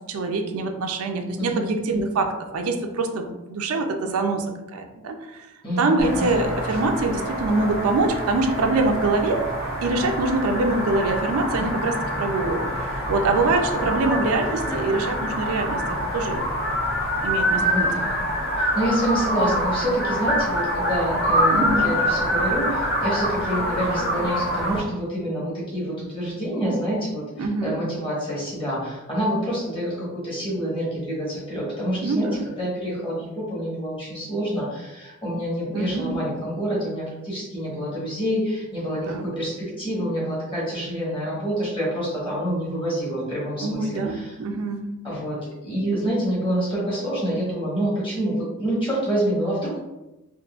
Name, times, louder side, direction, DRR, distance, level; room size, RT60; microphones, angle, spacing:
voice 1, 0.1-5.5 5.8-9.5 9.8-16.5 17.2-17.9 21.5-21.9 27.4-27.8 32.0-32.5 35.7-36.2 39.1-39.2 43.6-44.9, right 3 dB, 90° right, 5 dB, 0.4 m, -24 dB
voice 2, 5.6-6.4 11.6-11.8 12.1-12.2 13.8-13.9 17.6-18.2 18.6-44.3 45.0-49.8, equal, 25° left, -7 dB, 1.1 m, -27 dB
sound 1, 6.0-24.8, equal, 65° left, 1.4 m, -25 dB
3.6 x 2.6 x 2.4 m, 1.0 s
head